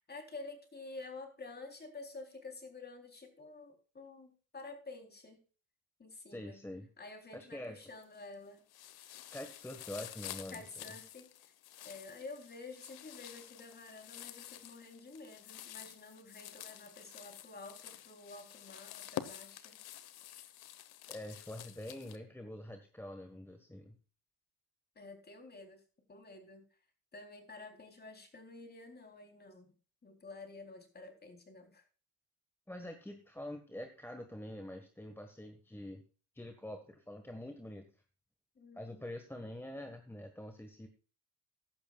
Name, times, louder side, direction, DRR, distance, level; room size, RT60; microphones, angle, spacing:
voice 1, 0.1-5.4 6.0-6.6 7.0-8.6 10.5-11.5 11.8-19.8 25.0-25.8 26.1-26.6 27.1-29.7 30.0-31.8 38.6-39.2, left 3 dB, 25° left, 5 dB, 3.6 m, -50 dB
voice 2, 6.3-6.9 7.3-7.8 9.3-10.9 21.1-24.0 32.7-36.0 36.3-37.9 38.7-40.9, left 1 dB, 5° left, 5 dB, 1.5 m, -45 dB
sound 1, 7.8-8.3 8.7-22.2, left 13 dB, 70° left, 1.3 m, -49 dB
15.0 x 11.5 x 2.4 m, 0.38 s
cardioid pair, 105°, 40 cm